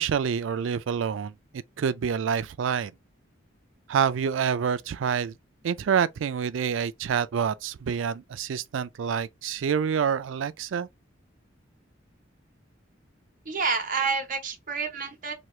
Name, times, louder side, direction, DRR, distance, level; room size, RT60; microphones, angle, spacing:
voice 1, 0.0-1.3 1.8-2.9 3.9-5.3 5.6-10.9, right 7 dB, 90° right, 0.4 m, -27 dB
voice 2, 13.4-15.3, right 5 dB, 45° right, 0.9 m, -28 dB
3.0 x 2.3 x 3.1 m
head